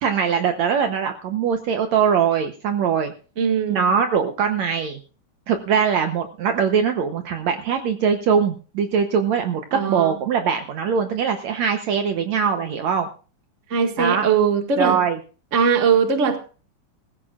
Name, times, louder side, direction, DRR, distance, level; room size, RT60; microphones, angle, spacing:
voice 1, 0.0-3.1 3.7-5.0 5.5-13.1 14.0-14.3 14.8-15.2, right 7 dB, 65° right, 6 dB, 1.9 m, -22 dB
voice 2, 3.4-3.8 9.7-10.1 13.7-15.0 15.5-16.4, right 6 dB, 30° right, 4 dB, 1.5 m, -20 dB
20.0 x 15.0 x 2.4 m, 0.37 s
omnidirectional pair, 3.9 m